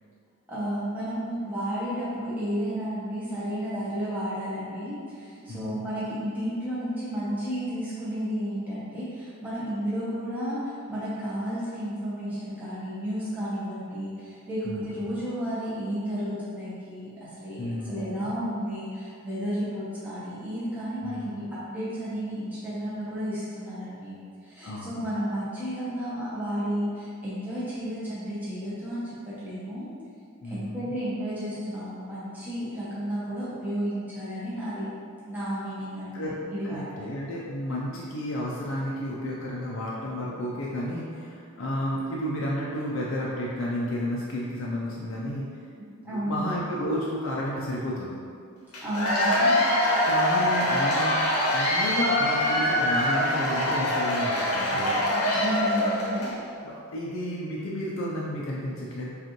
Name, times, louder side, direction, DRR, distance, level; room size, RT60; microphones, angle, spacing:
voice 1, 0.5-30.0 30.4-34.9 35.2-37.1 45.8-46.4 48.8-49.5 55.1-56.3, equal, 10° right, -10 dB, 0.7 m, -32 dB
voice 2, 5.5-5.8 14.6-15.2 17.6-18.3 21.0-21.4 24.6-25.1 30.4-30.9 36.1-36.4 36.6-45.6 46.0-48.2 50.0-51.2 51.5-55.0 56.6-59.1, equal, 60° left, -5 dB, 0.4 m, -32 dB
Cheering / Applause / Crowd, 48.7-56.4, left 1 dB, 85° left, 0.8 m, -24 dB
5.0 x 2.4 x 2.9 m, 2.3 s
head